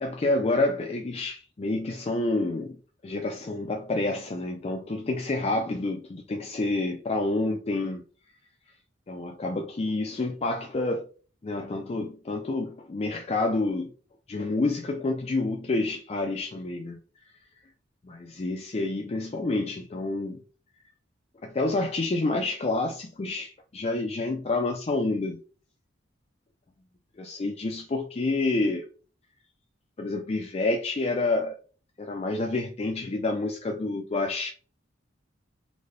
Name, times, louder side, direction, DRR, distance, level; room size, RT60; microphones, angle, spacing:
voice 1, 0.0-2.8 3.0-8.0 9.1-11.1 11.4-13.9 14.3-17.0 18.0-20.4 21.4-25.4 27.2-28.8 30.0-31.6 32.0-34.5, left 2 dB, 30° left, 0.4 m, -28 dB
3.9 x 2.2 x 3.3 m
head